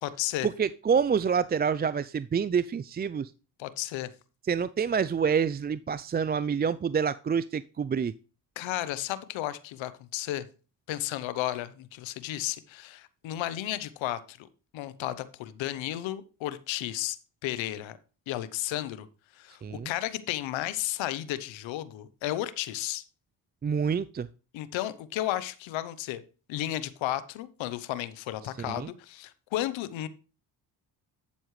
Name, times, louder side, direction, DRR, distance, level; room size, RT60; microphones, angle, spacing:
voice 1, 0.0-0.5 3.6-4.1 8.6-10.5 10.9-14.5 14.7-17.2 17.4-18.0 18.3-19.1 19.3-23.0 24.5-26.2 26.5-30.1, left 14 dB, 85° left, 15 dB, 0.9 m, -33 dB
voice 2, 0.6-3.3 4.5-8.1 19.6-19.9 23.6-24.3 28.7-28.9, right 6 dB, 25° right, 17 dB, 0.4 m, -27 dB
11.5 x 7.1 x 3.2 m, 0.35 s
supercardioid pair, 55°, 45 cm